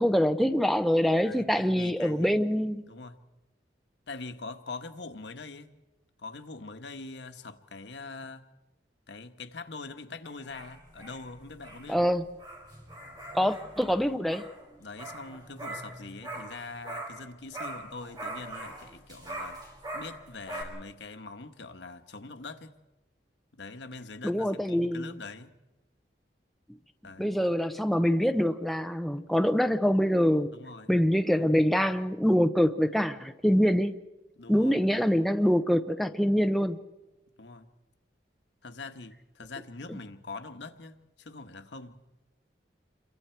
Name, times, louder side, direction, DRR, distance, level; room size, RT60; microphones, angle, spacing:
voice 1, 0.0-2.9 11.9-12.3 13.3-14.4 24.2-25.1 27.2-30.5 30.9-33.9 34.5-36.8 39.9-40.0, equal, ahead, 0.7 m, -25 dB
voice 2, 1.2-2.3 2.9-3.2 4.1-5.7 6.2-8.4 9.1-12.1 14.8-19.6 19.9-22.7 23.6-25.6 27.0-27.4 30.5-30.9 34.4-34.7 37.4-37.7 38.6-42.0, left 3 dB, 90° left, 1.3 m, -43 dB
sound 1, 10.2-17.3 17.5-20.6, right 1 dB, 25° right, 4.7 m, -42 dB
28.5 x 23.0 x 4.6 m
head